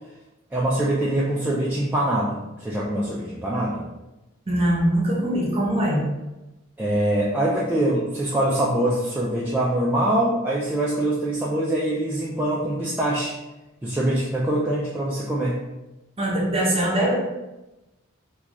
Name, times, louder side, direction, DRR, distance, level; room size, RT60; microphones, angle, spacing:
voice 1, 0.5-3.8 6.8-13.3 13.8-15.6, right 1 dB, 10° right, -6 dB, 0.3 m, -24 dB
voice 2, 4.5-6.0 16.2-17.2, right 1 dB, 30° right, -3 dB, 0.8 m, -22 dB
3.0 x 2.3 x 3.5 m, 1.0 s
head